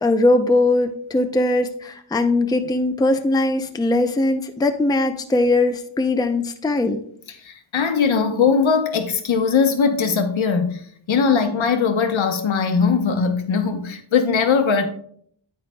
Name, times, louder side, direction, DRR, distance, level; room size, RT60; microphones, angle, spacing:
voice 1, 0.0-7.0, left 2 dB, 10° left, 0.5 m, -20 dB
voice 2, 7.4-14.9, left 5 dB, 70° left, 1.0 m, -20 dB
9.2 x 8.7 x 2.2 m
wide cardioid pair, 100°, 48 cm